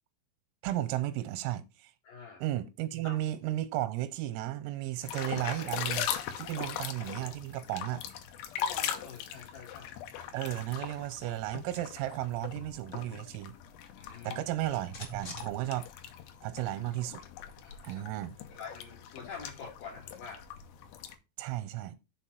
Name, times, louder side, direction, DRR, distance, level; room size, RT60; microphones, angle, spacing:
voice 1, 0.6-1.9 2.4-6.1 6.4-8.1 10.3-13.5 14.2-15.9 16.4-17.2 17.8-18.4 21.4-22.0, right 14 dB, 90° right, 3.3 m, -34 dB
voice 2, 2.0-2.4 3.0-3.2 6.5-6.7 8.5-10.0 14.0-14.4 17.6-18.0 18.5-20.4, left 5 dB, 65° left, 2.5 m, -46 dB
sound 1, 5.0-21.2, left 9 dB, 80° left, 2.4 m, -40 dB
sound 2, 14.0-16.4 16.7-16.8 17.1-19.0, left 3 dB, 35° left, 1.5 m, -51 dB
7.0 x 4.2 x 5.9 m
omnidirectional pair, 6.0 m